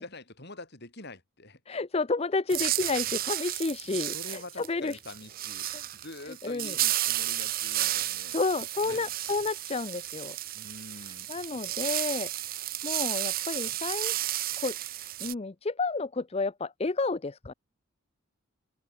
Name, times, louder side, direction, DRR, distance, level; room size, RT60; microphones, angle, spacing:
voice 1, 0.0-1.6 3.0-3.2 3.9-5.7 5.9-8.4 8.8-9.1 10.5-11.3, left 2 dB, 50° left, 5.3 m, -46 dB
voice 2, 1.7-5.0 5.7-5.8 6.4-6.7 7.9-8.1 8.3-10.4 11.3-14.3 14.6-17.5, left 3 dB, 30° left, 0.5 m, -31 dB
sound 1, 2.5-15.3, right 14 dB, 40° right, 0.6 m, -32 dB
open air
head